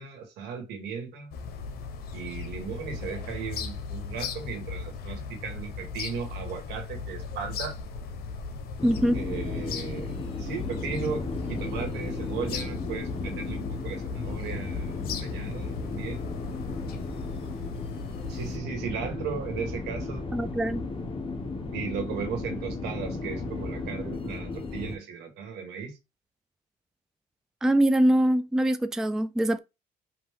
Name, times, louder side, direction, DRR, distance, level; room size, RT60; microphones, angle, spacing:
voice 1, 0.0-1.3 2.1-7.7 9.1-10.1 10.4-11.2 11.5-16.2 18.3-20.2 21.7-26.0, right 6 dB, 85° right, 1.7 m, -36 dB
sound 1, 1.3-18.6, left 5 dB, 65° left, 0.9 m, -37 dB
sound 2, 8.8-25.0, left 3 dB, 30° left, 1.2 m, -35 dB
voice 2, 8.8-9.2 20.3-20.8 27.6-29.6, right 1 dB, 5° right, 0.3 m, -23 dB
5.1 x 2.6 x 3.7 m
cardioid pair, 110°, 17 cm